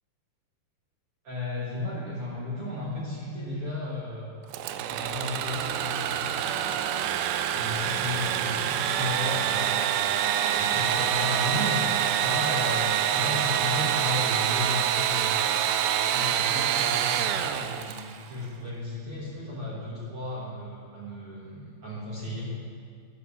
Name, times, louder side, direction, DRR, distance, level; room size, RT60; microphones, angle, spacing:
voice 1, 1.2-4.4 4.8-7.0 7.5-11.8 12.2-15.5 15.9-22.5, left 2 dB, 65° right, -6 dB, 1.4 m, -35 dB
Engine / Sawing, 4.5-18.2, right 10 dB, 85° right, 2.6 m, -26 dB
11.5 x 5.3 x 6.9 m, 2.2 s
omnidirectional pair, 4.9 m